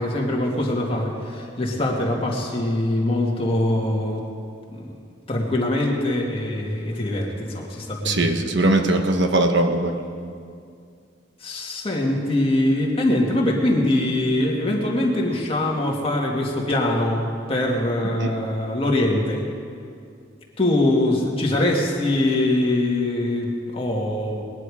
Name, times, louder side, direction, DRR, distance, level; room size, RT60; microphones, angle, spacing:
voice 1, 0.0-4.2 4.7-4.9 5.3-8.3 11.4-19.4 20.6-24.4, left 1 dB, 30° left, -2 dB, 2.1 m, -23 dB
voice 2, 8.0-9.9 18.2-18.3, right 2 dB, 70° right, 5 dB, 1.1 m, -20 dB
20.0 x 10.5 x 4.9 m, 2.3 s
head